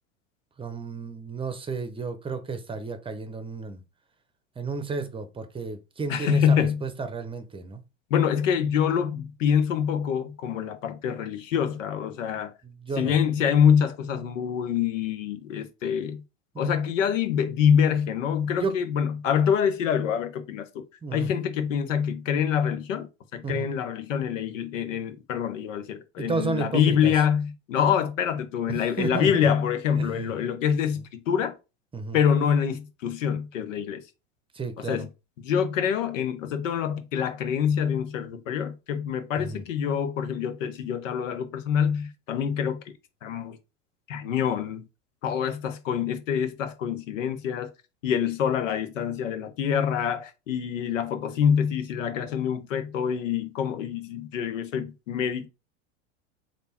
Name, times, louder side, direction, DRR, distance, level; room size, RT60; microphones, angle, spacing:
voice 1, 0.6-3.8 4.6-7.8 12.6-13.1 16.5-16.7 18.4-18.7 21.0-21.3 23.4-23.7 26.2-27.1 28.7-29.5 30.0-30.3 31.9-32.2 34.5-35.1 39.4-39.6, right 4 dB, 15° right, 0.8 m, -32 dB
voice 2, 6.1-6.8 8.1-12.5 13.0-16.2 16.6-20.8 21.1-23.1 23.3-31.6 32.1-34.0 34.8-35.1 35.4-42.8 43.2-43.6 44.1-44.9 45.2-47.7 48.0-55.5, left 8 dB, 80° left, 1.1 m, -25 dB
3.4 x 2.9 x 4.3 m
hypercardioid pair, 105°, 38 cm